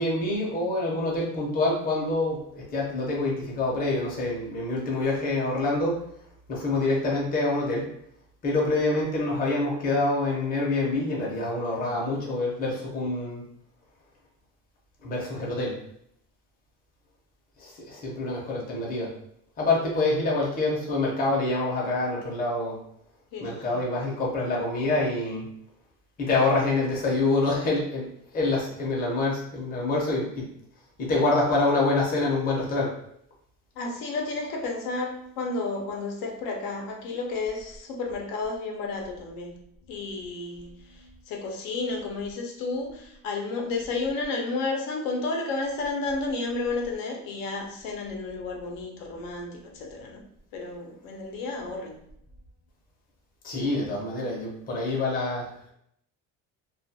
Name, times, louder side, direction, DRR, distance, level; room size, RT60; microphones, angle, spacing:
voice 1, 0.0-6.0 6.5-7.9 8.4-13.4 15.0-15.8 17.6-19.1 19.6-22.8 23.4-25.5 26.2-28.1 28.3-30.4 31.0-32.9 53.4-55.5, left 2 dB, 25° left, -3 dB, 0.6 m, -26 dB
voice 2, 23.3-23.8 33.8-39.5 39.9-50.2 50.5-52.0, left 3 dB, 85° left, 1 dB, 0.6 m, -32 dB
2.3 x 2.2 x 2.7 m, 0.73 s
cardioid pair, 165°, 33 cm